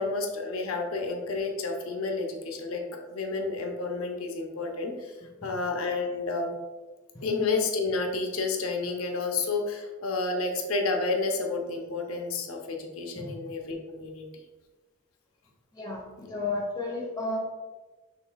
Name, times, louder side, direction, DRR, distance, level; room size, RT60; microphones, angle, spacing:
voice 1, 0.0-2.8 3.1-5.1 5.4-6.5 7.2-14.2 16.2-16.3, left 3 dB, 90° left, 2 dB, 0.6 m, -30 dB
voice 2, 15.7-17.4, left 2 dB, 20° left, -2 dB, 0.9 m, -33 dB
5.8 x 3.3 x 2.3 m, 1.2 s
head